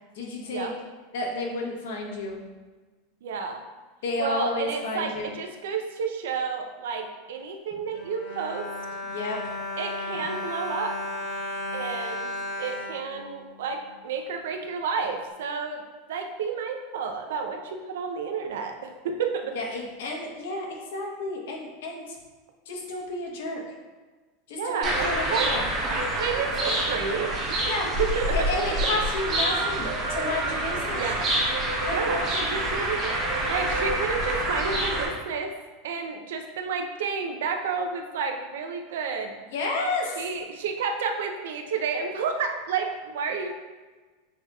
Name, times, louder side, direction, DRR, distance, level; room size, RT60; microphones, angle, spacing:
voice 1, 0.1-0.7 1.1-2.4 4.0-5.3 9.1-9.6 19.5-22.2 22.7-23.6 24.5-25.6 27.7-27.9 28.3-31.0 31.8-32.5 39.5-40.2, left 2 dB, 80° left, 0 dB, 1.0 m, -31 dB
voice 2, 3.2-3.6 4.2-8.7 9.8-11.0 11.7-15.8 16.1-19.6 24.6-25.5 26.1-28.5 28.8-28.9 31.0-31.3 31.9-33.2 33.5-35.5 35.8-39.4 40.2-43.5, right 5 dB, 90° right, 5 dB, 0.5 m, -31 dB
Bowed string instrument, 7.7-13.9 14.6-14.7 15.0-15.2, left 2 dB, 40° left, 0.9 m, -34 dB
sound 1, 24.8-35.1, right 1 dB, 30° right, 0.9 m, -27 dB
6.4 x 2.9 x 2.3 m, 1.3 s
supercardioid pair, 170°, 0 cm